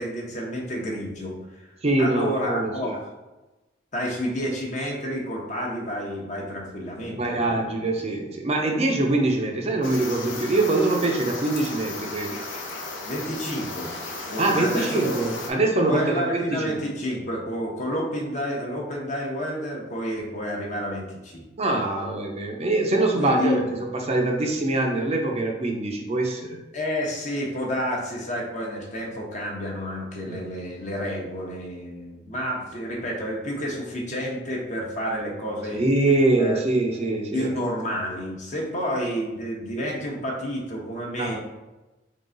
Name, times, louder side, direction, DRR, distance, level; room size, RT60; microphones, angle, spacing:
voice 1, 0.0-1.7 2.0-3.0 3.9-7.8 13.0-13.9 14.2-15.2 15.9-21.5 23.1-23.6 26.7-35.8 36.4-36.6 37.3-41.4, equal, 40° left, -1 dB, 0.9 m, -30 dB
voice 2, 1.8-3.0 7.2-12.4 14.4-16.8 21.6-26.6 30.3-30.4 35.7-37.5 41.2-41.4, right 2 dB, 35° right, 1 dB, 0.6 m, -24 dB
sound 1, 9.8-15.5, left 3 dB, 85° left, 0.7 m, -35 dB
3.8 x 3.3 x 3.9 m, 1.1 s
head